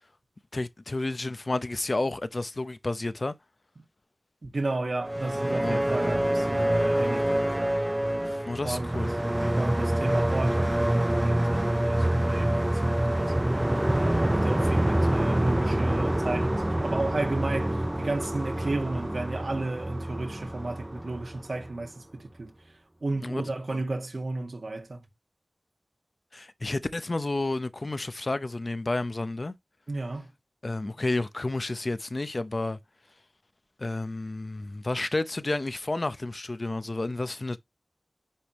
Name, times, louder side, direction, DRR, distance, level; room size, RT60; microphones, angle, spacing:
voice 1, 0.5-3.3 5.6-5.8 8.2-9.1 23.2-23.4 23.7-23.8 26.3-29.5 30.6-32.8 33.8-37.6, left 2 dB, 50° left, 0.6 m, -31 dB
voice 2, 4.4-7.7 8.6-9.2 9.6-13.3 14.1-22.5 23.0-25.0 29.9-30.3, right 2 dB, 70° right, 1.8 m, -33 dB
sound 1, 5.0-21.9, right 1 dB, 15° right, 0.4 m, -26 dB
9.8 x 3.4 x 3.0 m
wide cardioid pair, 70°, 0 cm